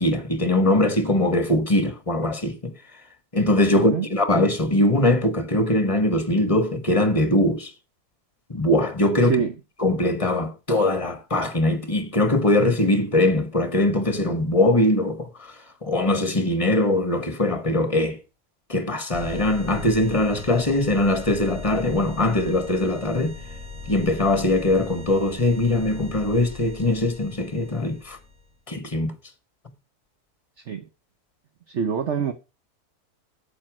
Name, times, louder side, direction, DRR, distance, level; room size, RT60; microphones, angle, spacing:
voice 1, 0.0-2.7 3.3-7.7 8.5-9.4 9.8-15.3 15.8-18.2 18.7-23.4 23.9-28.2 28.7-29.1, left 1 dB, 20° left, 1.5 m, -21 dB
voice 2, 3.7-4.1 9.2-9.5 30.7-30.9 31.7-32.3, right 7 dB, 55° right, 1.1 m, -25 dB
sound 1, 19.1-28.5, left 2 dB, 20° right, 3.1 m, -39 dB
8.7 x 7.5 x 6.1 m
omnidirectional pair, 1.6 m